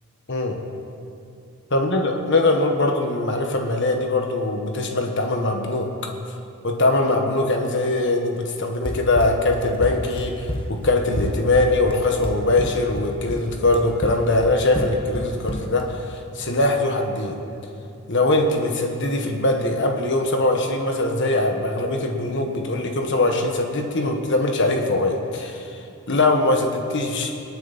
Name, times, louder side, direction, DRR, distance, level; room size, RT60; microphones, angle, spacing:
voice 1, 0.3-0.6 1.7-6.1 6.6-17.4 18.1-25.7 26.1-27.4, left 2 dB, 55° left, 3 dB, 1.6 m, -22 dB
Run, 8.8-15.9, left 1 dB, 25° left, 1.2 m, -29 dB
26.5 x 8.9 x 4.3 m, 2.5 s
head